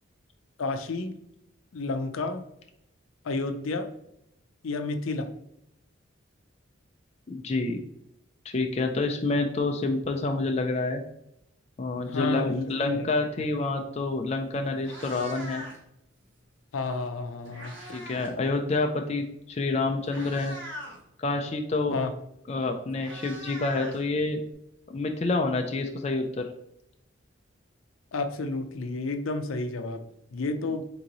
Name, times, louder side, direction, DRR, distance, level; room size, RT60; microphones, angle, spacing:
voice 1, 0.6-1.1 1.7-2.4 3.2-3.9 4.6-5.3 12.1-13.1 16.7-17.9 21.9-22.1 28.1-30.0 30.3-30.8, left 3 dB, 85° left, 6 dB, 0.5 m, -31 dB
voice 2, 7.3-7.8 8.5-11.0 11.8-15.6 17.9-20.6 21.2-22.0 22.5-24.4 24.9-26.5, left 3 dB, 30° left, 4 dB, 0.4 m, -28 dB
Meow, 14.2-14.3 14.7-16.0 17.0-18.4 18.6-18.9 19.6-19.7 20.0-21.0 22.3-22.4 22.6-24.5, equal, 70° right, 1.3 m, -42 dB
3.7 x 3.0 x 3.9 m, 0.79 s
head